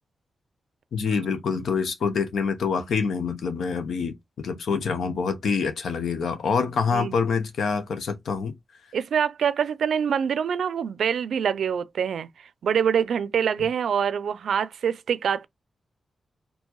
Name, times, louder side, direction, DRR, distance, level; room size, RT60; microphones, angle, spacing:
voice 1, 0.9-8.5, left 5 dB, 80° left, 0.8 m, -26 dB
voice 2, 6.6-7.1 8.9-12.3 12.6-15.5, right 7 dB, 75° right, 0.4 m, -25 dB
4.6 x 2.7 x 2.9 m
wide cardioid pair, 175°, 0 cm